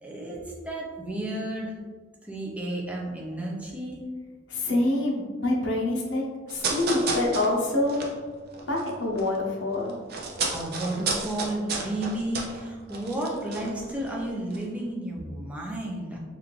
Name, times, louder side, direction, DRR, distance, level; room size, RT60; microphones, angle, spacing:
voice 1, 0.0-1.7 2.2-4.1 10.5-16.2, right 1 dB, 5° right, -3 dB, 0.5 m, -32 dB
voice 2, 4.5-8.0 8.7-9.9, left 2 dB, 70° left, -2 dB, 0.8 m, -26 dB
sound 1, 6.5-9.4 9.6-14.2 14.5-14.6, right 4 dB, 50° right, 0.5 m, -32 dB
3.5 x 2.5 x 3.1 m, 1.4 s
head